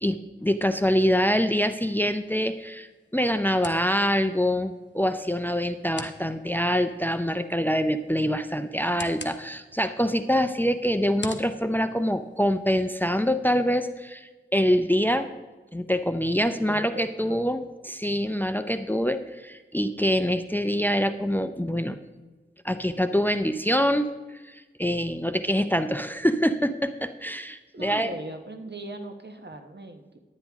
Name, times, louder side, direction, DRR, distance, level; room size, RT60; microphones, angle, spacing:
voice 1, 0.0-15.3 15.7-22.0 22.6-28.1, equal, 10° left, 10 dB, 0.5 m, -25 dB
sound 1, 1.8-12.8, left 3 dB, 65° left, 0.9 m, -47 dB
voice 2, 16.5-17.4 27.7-30.2, right 2 dB, 60° right, 6 dB, 1.1 m, -39 dB
10.0 x 9.8 x 3.5 m, 1.2 s
wide cardioid pair, 45°, 20 cm